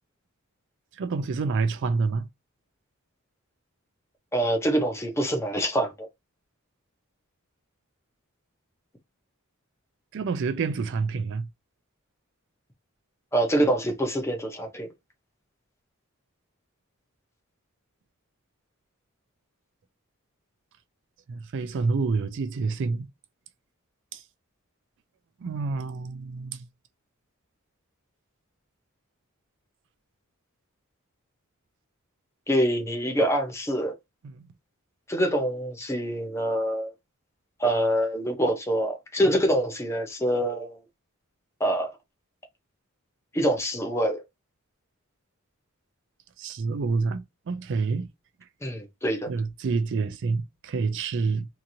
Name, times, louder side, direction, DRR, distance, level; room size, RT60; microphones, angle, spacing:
voice 1, 1.0-2.3 10.1-11.5 21.3-23.1 24.1-24.2 25.4-26.6 34.2-34.5 46.4-48.1 49.3-51.5, right 4 dB, 60° right, 0.4 m, -28 dB
voice 2, 4.3-6.1 13.3-14.9 32.5-33.9 35.1-36.9 37.6-40.8 41.6-41.9 43.3-44.2 48.6-49.3, right 1 dB, 15° left, 0.6 m, -25 dB
2.9 x 2.5 x 2.6 m
head